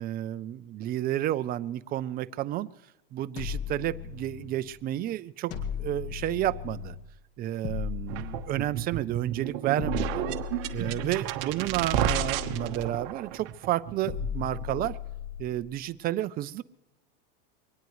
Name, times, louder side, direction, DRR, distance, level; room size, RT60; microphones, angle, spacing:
voice 1, 0.0-2.7 3.1-5.5 5.8-7.0 7.4-10.2 10.7-15.0 15.4-16.6, right 13 dB, 30° right, 14 dB, 0.5 m, -31 dB
sound 1, 3.4-4.7 5.5-7.1 7.6-9.1 9.8-11.4 11.9-13.3 14.1-15.7, left 8 dB, 50° left, 2.1 m, -37 dB
sound 2, 8.1-14.9, right 12 dB, 60° right, 1.2 m, -32 dB
23.0 x 19.0 x 3.2 m, 1.0 s
supercardioid pair, 130°, 30 cm